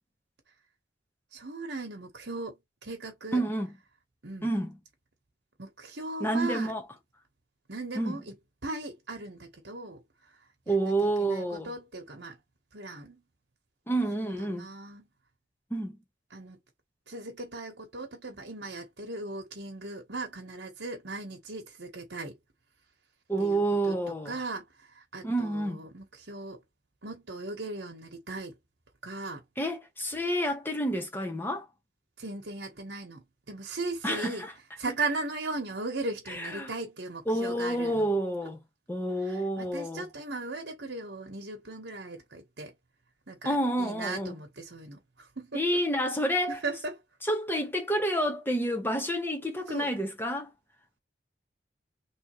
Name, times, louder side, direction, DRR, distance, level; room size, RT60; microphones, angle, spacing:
voice 1, 1.3-3.4 4.2-4.5 5.6-6.7 7.7-8.4 8.6-10.0 10.7-12.4 12.7-13.2 14.2-15.1 16.3-16.6 17.1-22.4 23.4-26.6 27.0-28.6 29.0-29.4 32.2-34.5 34.8-38.1 39.2-42.7 43.3-45.6 46.5-47.0 49.7-49.9, right 2 dB, 65° right, 1.3 m, -38 dB
voice 2, 3.3-3.7 4.4-4.7 6.2-6.8 7.9-8.2 10.7-11.7 13.9-14.7 15.7-16.0 23.3-24.3 25.2-25.8 29.6-31.7 34.0-34.5 36.3-36.7 37.3-38.6 38.9-40.0 43.4-44.3 45.5-46.6 47.3-50.5, right 1 dB, 10° left, 1.1 m, -29 dB
3.8 x 3.2 x 3.1 m
head